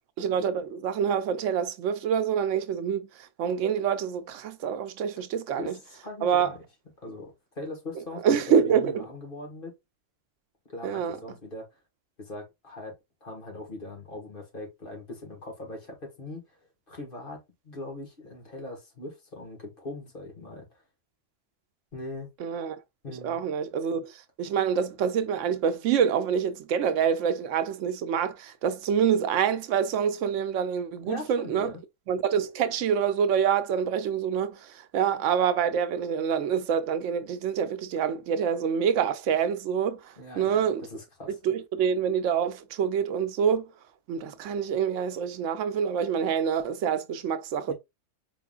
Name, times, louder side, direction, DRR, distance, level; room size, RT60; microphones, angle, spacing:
voice 1, 0.2-5.7 6.2-6.5 8.2-9.0 10.8-11.2 22.4-22.8 23.2-31.7 32.1-40.9 41.4-43.7 44.1-47.7, right 7 dB, 90° right, 1.0 m, -26 dB
voice 2, 5.6-6.6 7.0-8.4 8.7-9.7 10.7-11.7 12.2-12.9 13.2-16.4 16.9-20.7 21.9-22.3 23.0-23.4 31.0-31.8 40.2-41.4 47.7-47.8, left 2 dB, 45° left, 1.7 m, -40 dB
4.6 x 3.6 x 2.3 m
omnidirectional pair, 1.2 m